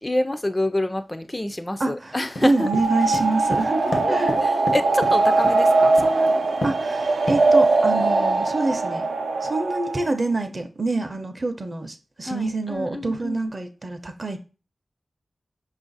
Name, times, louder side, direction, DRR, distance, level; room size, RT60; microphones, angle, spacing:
voice 1, 0.0-2.7 4.0-6.4 12.2-13.5, left 1 dB, 20° left, 0.3 m, -27 dB
voice 2, 1.8-4.4 6.6-9.1 9.4-14.4, right 2 dB, 40° right, 0.5 m, -26 dB
sound 1, 2.4-5.6 6.0-6.3 6.6-6.9 7.3-7.8, left 1 dB, 85° left, 0.8 m, -30 dB
sound 2, 2.5-10.1, right 3 dB, 90° right, 0.5 m, -21 dB
5.2 x 2.4 x 3.9 m
wide cardioid pair, 100°, 0 cm